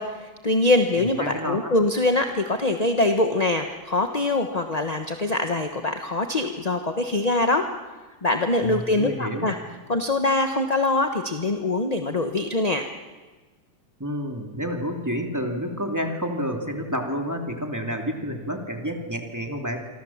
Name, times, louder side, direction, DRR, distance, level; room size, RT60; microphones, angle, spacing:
voice 1, 0.0-7.7 8.2-9.6 9.9-12.9, left 2 dB, 25° left, 5 dB, 0.8 m, -23 dB
voice 2, 1.0-1.7 8.6-9.5 14.0-19.8, equal, 10° right, 3 dB, 2.7 m, -29 dB
27.5 x 25.0 x 7.3 m, 1.3 s
omnidirectional pair, 2.3 m